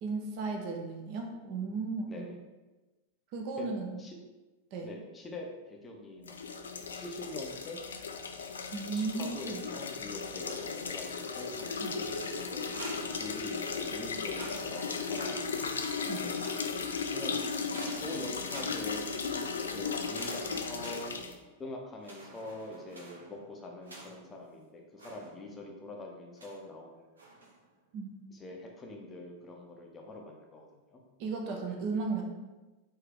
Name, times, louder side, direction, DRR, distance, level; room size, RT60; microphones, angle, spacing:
voice 1, 0.0-2.3 3.3-4.0 4.7-4.9 8.7-9.6 11.8-12.0 16.1-16.2 27.9-28.3 31.2-32.2, right 4 dB, 45° right, 1 dB, 0.6 m, -35 dB
voice 2, 4.8-6.4 6.9-7.8 8.9-12.7 13.1-16.4 17.1-17.3 18.0-19.4 19.7-21.2 21.6-27.1 28.3-31.0, left 2 dB, 20° left, 1 dB, 0.6 m, -44 dB
sound 1, 6.2-21.4, left 5 dB, 70° left, 0.3 m, -36 dB
sound 2, 12.5-13.8 14.2-15.8 16.1-17.0 17.7-19.3 20.0-21.6 22.0-24.4 25.0-25.7 26.4-26.7 27.2-27.7, right 2 dB, 75° right, 0.8 m, -49 dB
3.6 x 2.7 x 3.6 m, 1.1 s
figure-of-eight pair, 90°, 0 cm